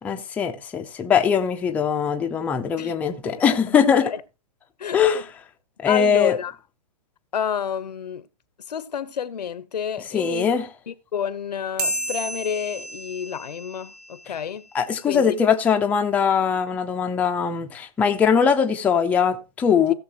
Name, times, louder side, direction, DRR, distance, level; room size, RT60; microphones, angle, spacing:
voice 1, 0.0-4.1 4.9-5.2 5.8-6.4 10.1-10.7 14.7-19.9, left 7 dB, 5° left, 0.6 m, -21 dB
voice 2, 3.7-4.2 4.8-5.2 5.9-6.5 7.3-8.3 8.7-10.5 10.9-14.7 15.1-15.3 19.9-20.0, left 8 dB, 90° left, 1.1 m, -29 dB
sound 1, 11.8-14.6, right 1 dB, 70° right, 2.6 m, -32 dB
16.5 x 6.8 x 3.0 m
hypercardioid pair, 160°, 21 cm